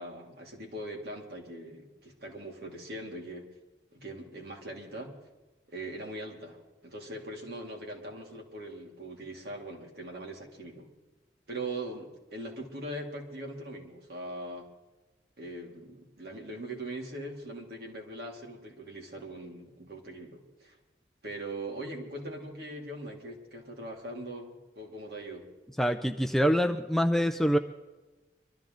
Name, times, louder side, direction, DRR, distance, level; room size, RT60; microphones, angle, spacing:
voice 1, 0.0-3.5 3.9-5.1 5.7-10.9 11.5-14.7 15.4-20.8 21.2-25.5, right 1 dB, 60° right, 0 dB, 2.7 m, -41 dB
voice 2, 25.8-27.6, equal, ahead, 6 dB, 0.4 m, -25 dB
23.5 x 13.5 x 3.9 m, 1.2 s
head